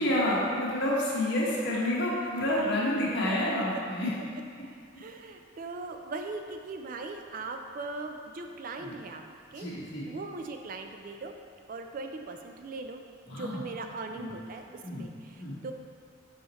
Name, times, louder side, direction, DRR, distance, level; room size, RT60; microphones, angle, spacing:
voice 1, 0.0-4.1 8.8-8.9 9.5-10.1 13.3-13.6 14.2-14.3 14.8-15.0 15.4-15.5, left 1 dB, 60° left, -6 dB, 1.4 m, -29 dB
voice 2, 5.0-9.2 9.5-11.3 11.7-13.0 13.3-15.7, right 3 dB, 45° right, 5 dB, 0.4 m, -40 dB
5.6 x 4.4 x 4.1 m, 2.1 s
head